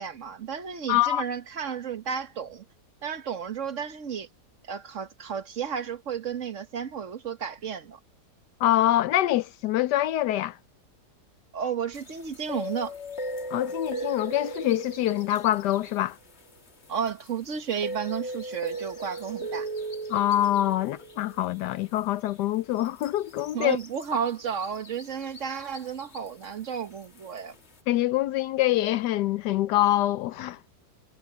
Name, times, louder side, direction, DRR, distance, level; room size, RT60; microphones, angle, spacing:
voice 1, 0.0-2.6 3.0-4.3 4.7-8.0 11.5-12.9 16.9-19.7 23.5-27.5, right 7 dB, 50° right, 1.4 m, -32 dB
voice 2, 0.9-1.2 8.6-10.6 13.5-16.2 20.1-23.8 27.9-30.6, left 14 dB, 80° left, 1.2 m, -25 dB
sound 1, 11.9-17.3 17.7-22.0 22.2-22.3 22.8-26.4 27.0-27.4, right 1 dB, 40° left, 1.9 m, -38 dB
omnidirectional pair, 1.8 m